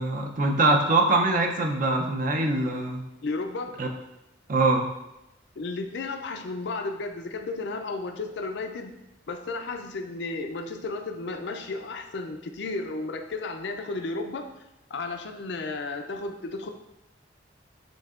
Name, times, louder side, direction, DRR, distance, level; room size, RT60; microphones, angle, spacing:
voice 1, 0.0-3.0 3.8-3.9 4.5-4.9, right 2 dB, 45° right, 3 dB, 0.6 m, -23 dB
voice 2, 3.2-3.7 5.6-8.9 9.3-14.5 14.9-16.7, left 3 dB, 60° left, 5 dB, 0.4 m, -33 dB
7.7 x 2.8 x 2.4 m, 0.91 s
head